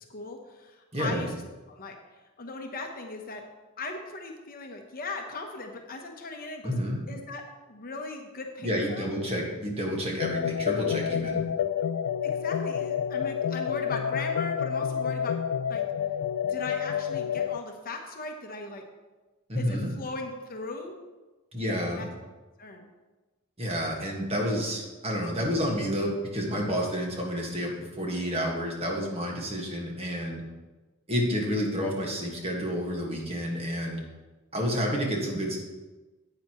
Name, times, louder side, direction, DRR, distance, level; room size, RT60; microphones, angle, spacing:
voice 1, 0.1-1.3 1.7-2.0 2.4-3.4 3.8-6.7 7.1-7.4 7.7-9.1 12.2-15.3 15.7-15.8 16.5-18.8 19.6-20.9 22.0-22.1 22.6-22.9, left 3 dB, 40° left, 3 dB, 0.9 m, -38 dB
voice 2, 0.9-1.2 6.6-7.0 8.6-11.4 19.5-19.9 21.5-22.0 23.6-27.7 28.0-30.4 31.1-34.0 34.5-35.6, equal, 30° right, -1 dB, 1.7 m, -29 dB
sound 1, 10.2-17.6, left 8 dB, 80° left, 0.3 m, -29 dB
10.0 x 8.6 x 3.1 m, 1.2 s
head